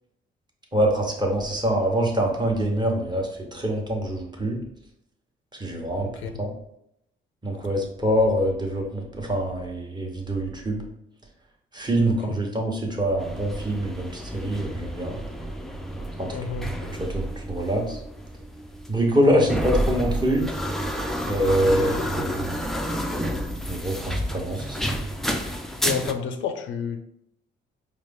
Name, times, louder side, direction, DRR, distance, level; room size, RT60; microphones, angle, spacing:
voice 1, 0.7-4.6 5.6-6.1 6.4-6.5 7.4-10.8 11.7-15.2 16.2-16.3 16.6-16.7 17.1-18.0 18.9-20.4 21.3-22.6 23.1-23.3 23.7-24.9, equal, 20° right, 0 dB, 1.0 m, -25 dB
voice 2, 6.0-6.4 12.0-12.4 16.3-16.7 21.5-22.0 25.8-27.0, left 7 dB, 75° left, 7 dB, 0.5 m, -31 dB
sound 1, 13.2-26.1, equal, ahead, 0.4 m, -30 dB
4.8 x 2.0 x 3.5 m, 0.76 s
cardioid pair, 90°, 20 cm